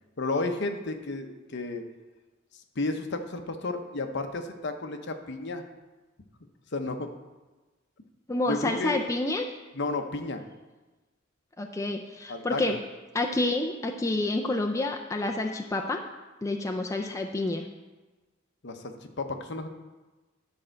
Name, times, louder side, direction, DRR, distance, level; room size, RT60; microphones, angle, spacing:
voice 1, 0.2-1.9 2.8-5.6 6.7-7.1 8.5-9.0 9.7-10.4 12.3-12.6 18.6-19.7, left 3 dB, 60° left, 6 dB, 0.8 m, -32 dB
voice 2, 8.3-9.5 11.6-12.8 13.1-16.0 16.4-17.7, left 2 dB, 15° left, 3 dB, 0.4 m, -28 dB
10.5 x 4.4 x 6.4 m, 1.2 s
head